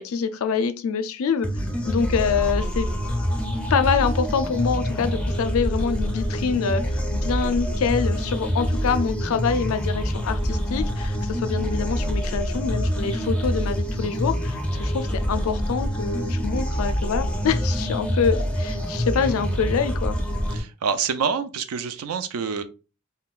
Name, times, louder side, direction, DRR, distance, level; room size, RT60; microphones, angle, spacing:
voice 1, 0.0-2.9 3.7-20.2, left 6 dB, 70° left, 0.4 m, -25 dB
sound 1, 1.4-20.6, equal, 5° left, 0.5 m, -26 dB
voice 2, 20.5-22.6, right 6 dB, 75° right, 0.4 m, -27 dB
3.7 x 2.2 x 2.4 m
head